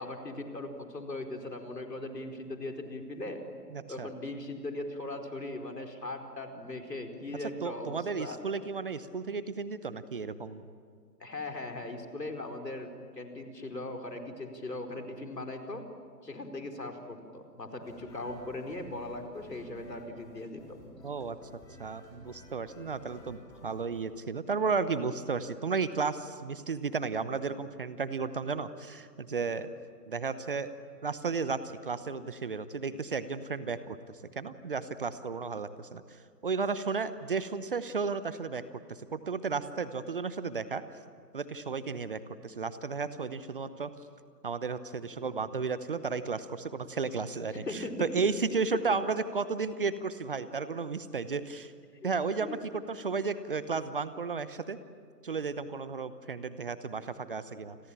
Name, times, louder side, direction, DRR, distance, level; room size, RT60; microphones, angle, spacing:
voice 1, 0.0-3.4 3.9-8.4 11.2-15.8 16.2-20.8 47.6-48.0 52.4-52.6, left 2 dB, 75° left, 4 dB, 4.7 m, -39 dB
voice 2, 3.7-4.1 7.6-10.6 21.0-21.4 21.8-29.7 30.1-30.7 31.0-34.0 34.4-38.6 38.9-40.8 41.3-43.9 44.4-51.7 52.0-54.8 55.2-57.8, right 4 dB, 35° right, 14 dB, 0.9 m, -33 dB
sound 1, 17.8-24.0, left 1 dB, 5° left, 3.7 m, -54 dB
29.5 x 22.0 x 8.8 m, 2.2 s
figure-of-eight pair, 145°, 49 cm